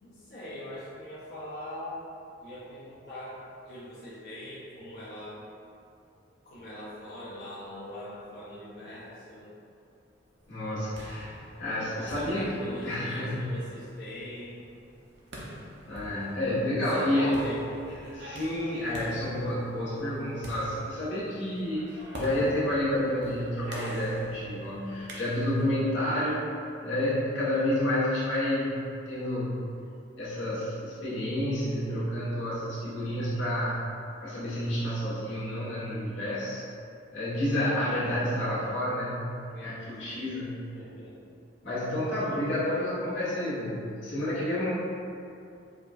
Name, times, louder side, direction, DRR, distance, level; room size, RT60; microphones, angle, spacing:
voice 1, 0.0-2.0 2.4-3.4 3.6-5.5 6.4-9.5 11.9-14.6 16.8-18.2 37.6-38.1 40.2-40.4 40.7-41.3 42.2-42.6, left 1 dB, 50° left, -10 dB, 0.5 m, -42 dB
voice 2, 10.5-11.3 11.6-13.6 15.9-17.4 18.1-26.5 26.8-29.7 30.2-36.6 37.1-40.7 41.6-44.7, left 1 dB, 85° left, -10 dB, 1.2 m, -30 dB
sound 1, 10.6-25.8, equal, 60° right, 0.6 m, -44 dB
4.7 x 2.3 x 2.5 m, 2.6 s
head